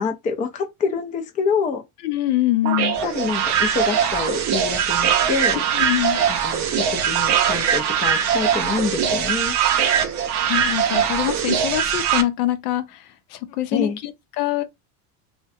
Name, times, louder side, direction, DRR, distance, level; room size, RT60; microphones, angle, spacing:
voice 1, 0.0-1.8 2.6-2.7 3.0-5.7 6.4-9.6 13.7-14.0, left 5 dB, 20° left, 0.3 m, -26 dB
voice 2, 2.0-3.0 5.5-6.2 10.5-14.6, left 14 dB, 85° left, 0.6 m, -24 dB
sound 1, 2.7-12.2, right 8 dB, 40° right, 0.5 m, -21 dB
2.6 x 2.2 x 2.5 m
supercardioid pair, 105°, 44 cm